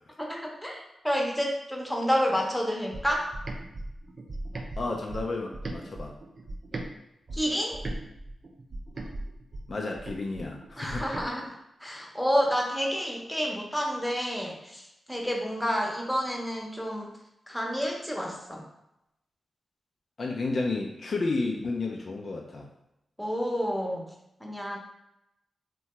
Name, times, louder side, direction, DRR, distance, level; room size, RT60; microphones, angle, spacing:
voice 1, 0.2-3.3 7.3-7.8 10.8-11.5 11.8-17.1 17.5-18.6 23.2-24.0 24.4-24.8, equal, 5° left, 0 dB, 0.7 m, -29 dB
sound 1, 2.9-6.9 7.3-11.3, right 2 dB, 55° right, 0.4 m, -38 dB
voice 2, 4.8-6.1 9.7-11.1 20.2-22.7, left 3 dB, 60° left, 0 dB, 0.4 m, -31 dB
2.7 x 2.2 x 3.0 m, 0.85 s
supercardioid pair, 45°, 0 cm